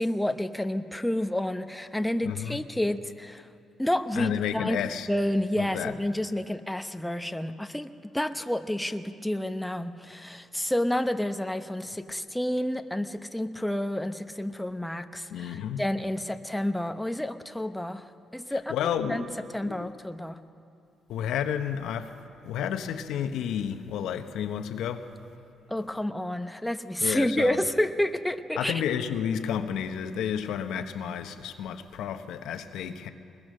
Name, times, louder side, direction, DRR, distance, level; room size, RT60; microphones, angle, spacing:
voice 1, 0.0-3.4 3.8-18.1 18.3-18.8 19.1-19.3 19.5-20.4 25.7-28.8, left 1 dB, 5° left, 8 dB, 0.9 m, -29 dB
voice 2, 2.2-2.6 4.2-5.1 5.6-5.9 15.3-15.8 18.7-19.3 19.6-19.9 21.1-22.1 22.4-25.0 27.0-27.6 28.6-33.1, left 8 dB, 85° left, 8 dB, 1.2 m, -31 dB
21.0 x 21.0 x 6.5 m, 2.7 s
cardioid pair, 90°, 0 cm